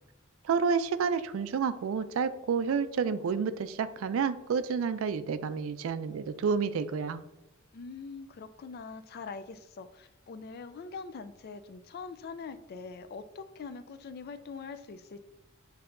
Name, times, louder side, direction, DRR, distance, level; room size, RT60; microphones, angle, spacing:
voice 1, 0.4-7.2, right 6 dB, 75° right, 13 dB, 0.4 m, -30 dB
voice 2, 7.7-15.3, left 4 dB, 50° left, 11 dB, 0.3 m, -43 dB
7.7 x 2.7 x 2.5 m, 0.95 s
head